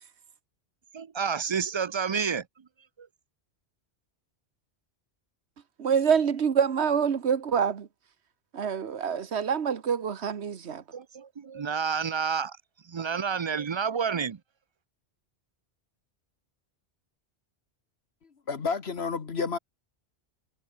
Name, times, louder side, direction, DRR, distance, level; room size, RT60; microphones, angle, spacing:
voice 1, 0.9-2.4 3.0-3.1 10.9-12.6 12.9-14.4, right 6 dB, 40° right, 0.4 m, -29 dB
voice 2, 5.8-7.9 8.5-10.8, right 7 dB, 75° right, 1.4 m, -26 dB
voice 3, 18.2-19.6, left 5 dB, 70° left, 1.7 m, -31 dB
omnidirectional pair, 1.1 m